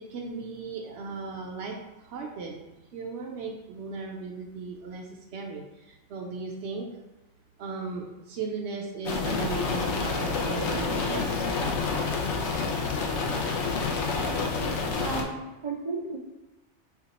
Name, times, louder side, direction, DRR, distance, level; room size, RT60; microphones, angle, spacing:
voice 1, 0.1-5.1 5.3-6.9 7.6-11.4, right 4 dB, 70° right, -1 dB, 0.8 m, -37 dB
sound 1, 9.1-15.2, left 4 dB, 75° left, 0.9 m, -28 dB
voice 2, 15.0-16.2, right 3 dB, 55° right, 1 dB, 0.3 m, -33 dB
5.1 x 2.3 x 4.0 m, 1.0 s
omnidirectional pair, 1.2 m